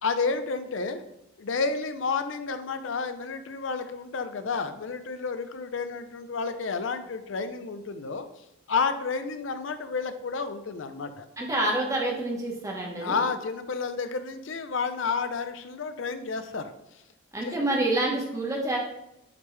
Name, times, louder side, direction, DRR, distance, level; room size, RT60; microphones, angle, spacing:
voice 1, 0.0-1.0 1.4-8.3 8.7-11.3 13.0-16.7 17.4-17.6, left 4 dB, 75° left, 9 dB, 0.6 m, -30 dB
voice 2, 11.4-13.2 17.3-18.8, right 1 dB, 15° right, -2 dB, 1.2 m, -27 dB
8.8 x 3.5 x 3.3 m, 0.85 s
head